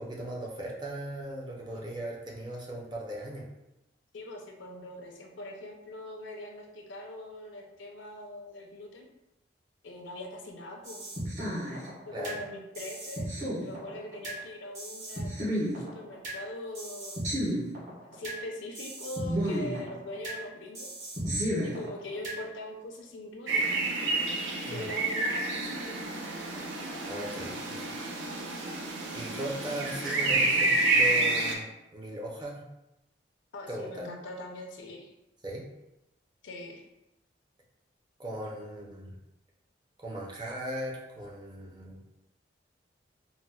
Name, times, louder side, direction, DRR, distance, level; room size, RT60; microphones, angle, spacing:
voice 1, 0.0-3.5 12.1-12.4 24.7-24.9 27.1-27.9 29.1-32.6 33.7-34.1 35.4-35.6 38.2-39.2 40.0-42.0, right 1 dB, 25° right, -2 dB, 0.5 m, -38 dB
voice 2, 4.1-9.1 9.8-11.1 12.0-13.3 13.6-15.3 15.6-17.2 18.0-20.9 21.4-23.7 24.6-25.9 33.5-35.1 36.4-36.8, left 1 dB, 80° left, 2 dB, 0.5 m, -42 dB
sound 1, 10.8-12.4 12.7-14.4 14.7-16.4 16.7-18.4 18.7-20.4 20.7-22.4, equal, 40° right, 1.1 m, -33 dB
sound 2, 23.5-31.6, right 2 dB, 75° right, 0.5 m, -29 dB
4.0 x 2.0 x 2.2 m, 0.92 s
head